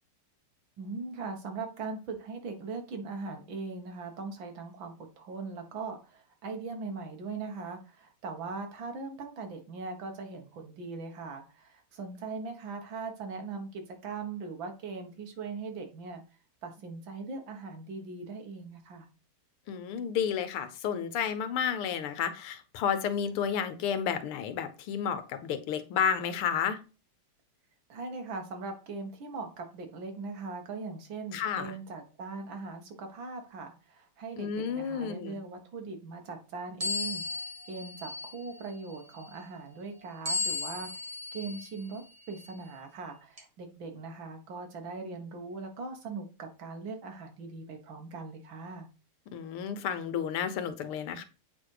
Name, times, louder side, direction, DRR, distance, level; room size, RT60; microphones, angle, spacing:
voice 1, 0.8-16.2 16.6-19.1 27.9-37.2 37.7-48.9, right 4 dB, 60° right, 4 dB, 2.2 m, -40 dB
voice 2, 19.7-26.8 31.3-31.8 34.4-35.4 49.3-51.2, left 7 dB, 80° left, 11 dB, 1.8 m, -31 dB
sound 1, 36.8-38.5 40.2-41.7 42.3-42.5 43.4-43.5, left 3 dB, 20° right, 1.1 m, -35 dB
8.3 x 4.2 x 4.8 m, 0.32 s
omnidirectional pair, 2.4 m